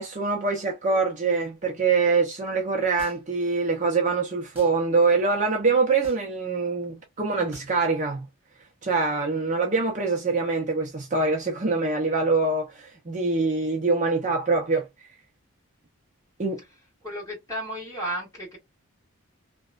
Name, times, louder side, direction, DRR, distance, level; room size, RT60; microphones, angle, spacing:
voice 1, 0.0-8.3 8.8-14.9 16.4-16.6, right 4 dB, 35° right, 0.5 m, -24 dB
sound 1, 3.0-3.4 4.5-4.8 6.0-6.4 7.5-7.8, right 1 dB, 10° right, 1.4 m, -47 dB
voice 2, 17.0-18.6, right 1 dB, 15° left, 1.6 m, -33 dB
2.9 x 2.1 x 2.3 m
head